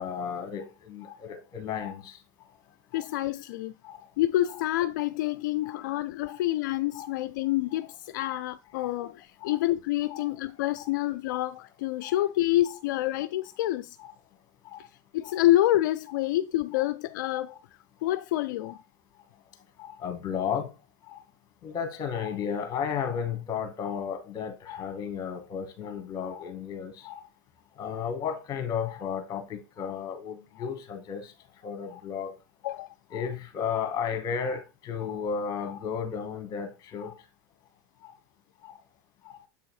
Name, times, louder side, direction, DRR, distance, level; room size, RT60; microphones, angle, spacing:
voice 1, 0.0-2.2 2.9-3.1 3.8-4.0 5.6-5.7 6.3-6.4 6.9-7.1 8.2-8.3 9.4-9.5 10.1-10.2 12.1-12.2 14.0-14.1 14.7-14.8 15.2-15.4 19.8-20.7 21.1-21.2 21.6-27.2 27.8-31.3 31.6-32.3 33.1-37.1 38.0-38.1 38.6-38.7 39.2-39.4, left 7 dB, 40° left, 1.7 m, -33 dB
voice 2, 2.9-3.7 4.2-14.0 14.8-14.9 15.1-17.6 18.0-18.8 32.6-32.9, left 15 dB, 75° left, 0.4 m, -27 dB
7.5 x 3.6 x 4.7 m
supercardioid pair, 110°, 10 cm